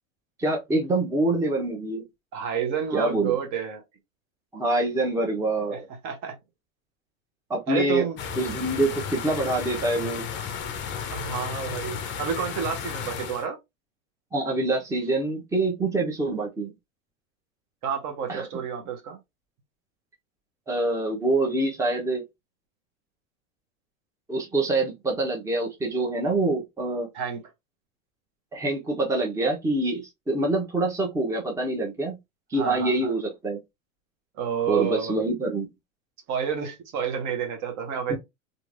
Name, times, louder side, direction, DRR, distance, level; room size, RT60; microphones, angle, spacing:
voice 1, 0.4-2.0 2.9-3.4 4.5-5.8 7.5-8.1 8.4-10.2 14.3-16.7 18.3-18.5 20.7-22.2 24.3-27.1 28.5-32.2 32.5-33.6 34.7-35.7 38.1-38.2, right 2 dB, 10° right, 0.8 m, -25 dB
voice 2, 2.3-3.8 5.7-6.4 7.7-8.2 11.1-13.6 17.8-19.2 27.1-27.4 32.6-33.1 34.4-35.2 36.3-38.2, right 7 dB, 45° right, 0.9 m, -30 dB
sound 1, 8.2-13.5, left 7 dB, 30° left, 0.6 m, -33 dB
2.9 x 2.6 x 2.5 m
hypercardioid pair, 110°, 41 cm